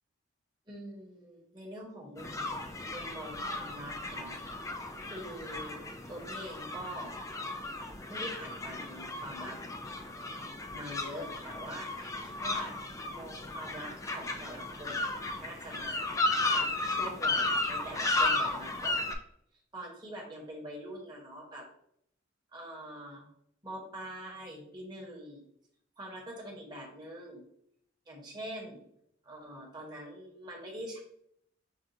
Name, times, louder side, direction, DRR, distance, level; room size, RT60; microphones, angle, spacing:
voice 1, 0.7-4.3 5.0-7.1 8.1-9.6 10.7-16.1 16.5-19.1 19.7-21.6 22.5-23.3 23.6-25.4 26.0-27.4 28.1-28.8 29.2-31.0, right 1 dB, 20° right, -2 dB, 1.0 m, -44 dB
sound 1, 2.2-19.1, left 2 dB, 15° left, 0.3 m, -34 dB
5.7 x 2.4 x 2.6 m, 0.70 s
head